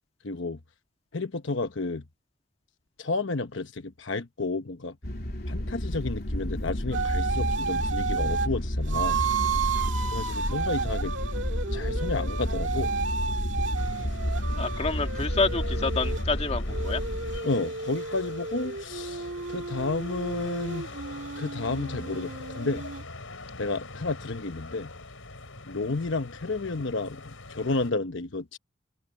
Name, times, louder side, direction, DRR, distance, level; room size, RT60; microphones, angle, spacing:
voice 1, 0.2-0.6 1.1-2.0 3.0-5.0 5.5-9.2 10.1-11.1 11.7-12.9 17.4-20.9 21.4-22.8 23.6-24.9 25.6-28.6, left 3 dB, 70° left, 1.0 m, -31 dB
sound 1, 5.0-17.4, equal, 50° left, 3.1 m, -30 dB
sound 2, 6.9-8.5 8.9-16.3 16.7-23.0, right 5 dB, 65° right, 2.1 m, -32 dB
sound 3, 13.7-27.9, left 2 dB, 85° left, 5.2 m, -43 dB
voice 2, 14.6-17.0, left 3 dB, 30° left, 1.8 m, -28 dB
open air
head